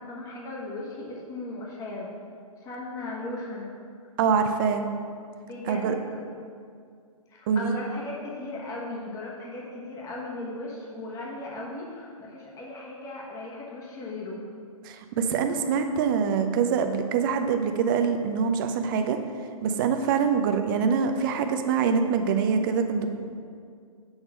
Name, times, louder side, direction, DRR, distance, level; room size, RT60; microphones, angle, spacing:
voice 1, 0.0-2.2 2.6-3.7 5.5-6.3 7.3-14.5, left 2 dB, 20° left, -3 dB, 1.2 m, -37 dB
voice 2, 4.2-4.9 5.7-5.9 7.5-7.8 14.8-19.2 19.6-23.1, right 6 dB, 35° right, 7 dB, 0.5 m, -24 dB
6.3 x 3.6 x 6.1 m, 2.2 s
hypercardioid pair, 135°, 18 cm